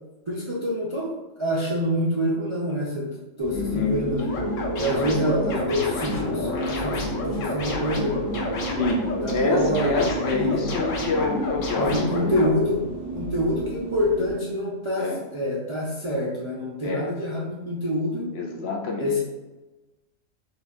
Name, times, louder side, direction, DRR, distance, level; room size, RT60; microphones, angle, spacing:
voice 1, 0.3-1.1 1.4-3.1 3.4-4.3 4.8-8.6 9.2-10.6 11.8-12.8 13.1-18.3 19.0-19.2, equal, 45° right, -5 dB, 0.4 m, -26 dB
sound 1, 3.4-14.3, right 1 dB, 60° right, 1.4 m, -33 dB
voice 2, 3.5-4.1 8.7-9.0 9.3-12.4 15.0-15.2 16.8-17.1 18.3-19.2, left 3 dB, 60° left, 1 dB, 0.8 m, -27 dB
sound 2, 4.2-12.5, left 2 dB, 80° left, 1.2 m, -30 dB
4.0 x 2.3 x 4.2 m, 1.1 s
omnidirectional pair, 1.3 m